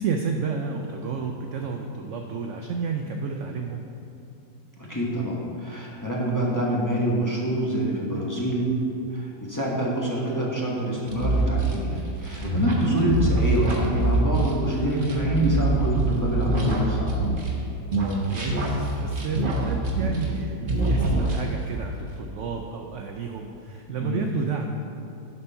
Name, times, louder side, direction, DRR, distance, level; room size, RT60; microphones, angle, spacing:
voice 1, 0.0-3.9 12.5-13.0 18.3-24.7, right 5 dB, 75° right, 3 dB, 0.7 m, -31 dB
voice 2, 4.8-8.7 9.1-17.1 24.0-24.2, right 1 dB, 15° left, -5 dB, 1.0 m, -26 dB
sound 1, 11.1-17.6 17.9-20.4 20.7-21.7, right 2 dB, 35° right, 1.1 m, -25 dB
11.0 x 4.2 x 5.6 m, 2.7 s
omnidirectional pair, 1.8 m